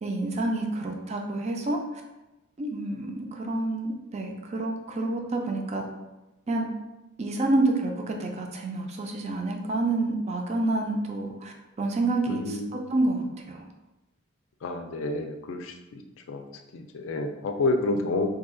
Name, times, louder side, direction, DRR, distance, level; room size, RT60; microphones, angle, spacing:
voice 1, 0.0-1.8 2.6-5.8 6.5-6.7 7.2-13.6, right 2 dB, 30° right, 2 dB, 0.4 m, -28 dB
voice 2, 12.3-12.7 14.6-16.0 16.3-16.4 16.7-18.3, left 2 dB, 70° left, 5 dB, 0.4 m, -29 dB
2.8 x 2.3 x 3.7 m, 1.0 s
head